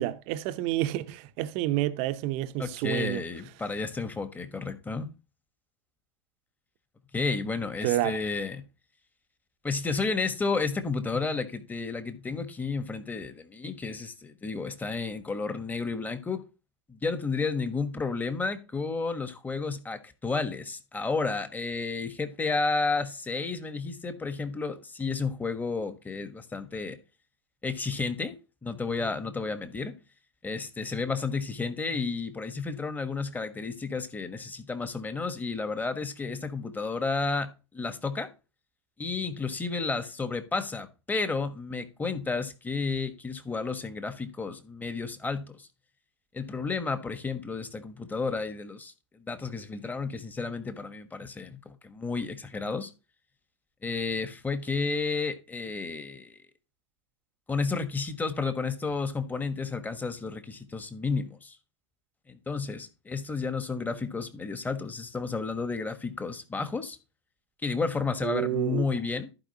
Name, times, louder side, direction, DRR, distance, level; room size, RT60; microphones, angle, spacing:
voice 1, 0.0-3.2 7.8-8.2 68.2-68.9, right 15 dB, 45° right, 0.7 m, -29 dB
voice 2, 2.6-5.1 7.1-8.6 9.6-16.4 16.9-27.0 27.6-28.4 28.6-29.9 30.4-38.3 39.0-45.7 46.3-52.9 53.8-56.4 57.5-61.6 62.3-67.0 67.6-69.3, left 4 dB, 10° left, 1.3 m, -32 dB
15.0 x 5.0 x 2.9 m
hypercardioid pair, 105°, 15 cm